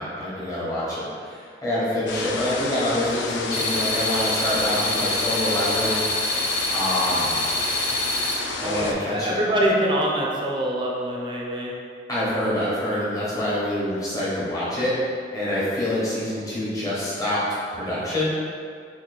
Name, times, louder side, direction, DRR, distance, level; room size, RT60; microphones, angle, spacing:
voice 1, 0.0-6.0 6.7-7.4 8.6-9.4 12.1-14.9 15.3-17.4 17.7-18.3, left 1 dB, 20° left, -9 dB, 1.0 m, -26 dB
sound 1, 2.1-8.9, left 4 dB, 90° left, 0.3 m, -31 dB
sound 2, 3.5-8.3, left 2 dB, 50° left, 1.0 m, -26 dB
voice 2, 8.6-11.7, right 1 dB, 25° right, -3 dB, 0.5 m, -24 dB
3.0 x 2.6 x 4.1 m, 2.2 s
head